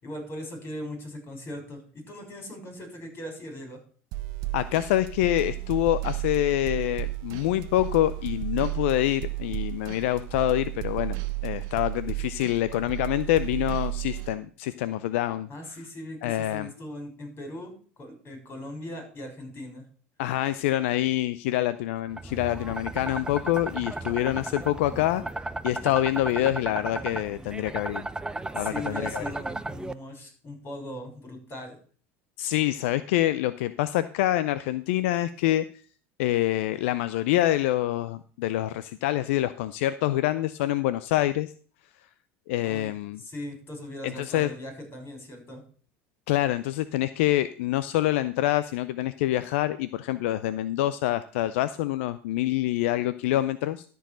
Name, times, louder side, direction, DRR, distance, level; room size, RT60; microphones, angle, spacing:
voice 1, 0.0-3.8 15.5-19.8 28.6-31.8 42.6-42.9 43.2-45.6, left 1 dB, 35° left, 3 dB, 6.2 m, -39 dB
sound 1, 4.1-14.3, right 20 dB, 65° right, 1.1 m, -33 dB
voice 2, 4.5-11.2 11.4-15.5 16.2-16.7 20.2-25.2 25.6-28.0 28.5-29.2 32.4-35.7 36.2-41.5 42.5-43.2 44.0-44.5 46.3-53.8, left 14 dB, 75° left, 13 dB, 0.5 m, -26 dB
sound 2, 22.1-29.9, right 2 dB, 10° right, 0.6 m, -35 dB
13.0 x 4.7 x 6.1 m, 0.43 s
hypercardioid pair, 90°, 7 cm